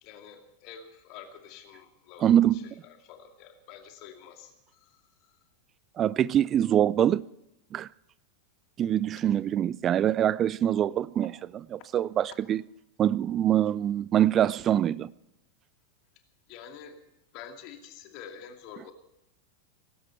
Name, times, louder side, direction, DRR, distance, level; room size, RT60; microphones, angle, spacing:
voice 1, 0.0-5.4 11.2-11.3 16.5-17.0 17.3-18.9, left 8 dB, 40° left, 2.4 m, -48 dB
voice 2, 2.2-2.6 6.0-7.2 7.7-7.9 8.8-11.3 11.7-12.6 13.0-15.1, right 10 dB, 30° right, 0.5 m, -24 dB
19.5 x 16.5 x 4.4 m
figure-of-eight pair, 90°, 0 cm